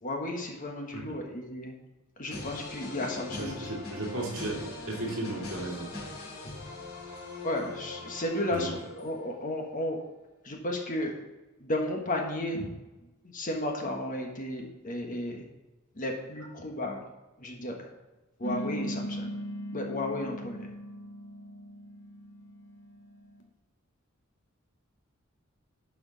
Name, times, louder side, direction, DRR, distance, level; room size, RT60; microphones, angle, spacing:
voice 1, 0.0-1.7 2.2-3.8 7.4-10.0 10.4-11.1 11.6-12.7 13.2-15.4 15.9-17.1 17.4-17.9 18.4-19.3 19.7-20.7, left 1 dB, 40° left, 2 dB, 1.4 m, -33 dB
sound 1, 2.3-9.3, left 3 dB, 80° left, 2.5 m, -41 dB
voice 2, 3.3-5.9 8.5-8.7, right 2 dB, 70° right, -2 dB, 2.3 m, -35 dB
sound 2, 18.4-23.4, equal, 60° left, 1.5 m, -38 dB
11.0 x 4.9 x 4.0 m, 1.1 s
head